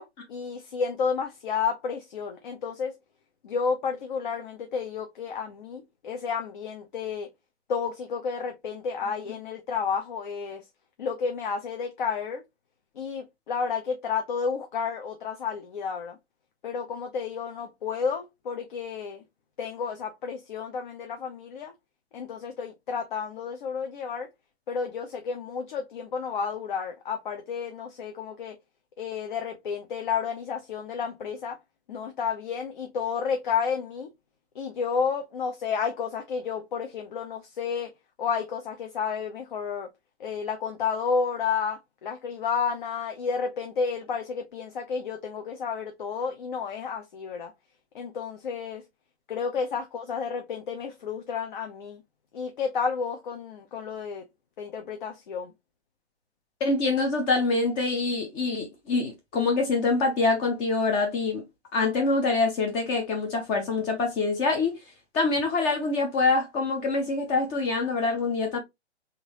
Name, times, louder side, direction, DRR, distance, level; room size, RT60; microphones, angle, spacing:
voice 1, 0.0-2.9 3.4-7.3 7.7-10.6 11.0-12.4 13.0-16.2 16.6-19.2 19.6-21.7 22.1-24.3 24.7-28.6 29.0-31.6 31.9-34.1 34.5-37.9 38.2-39.9 40.2-47.5 47.9-48.8 49.3-52.0 52.3-54.2 54.6-55.5, left 6 dB, 45° left, 0.8 m, -31 dB
voice 2, 56.6-61.4 61.7-64.8 65.1-68.6, left 3 dB, 15° left, 0.5 m, -25 dB
3.8 x 2.6 x 2.9 m
figure-of-eight pair, 135°, 34 cm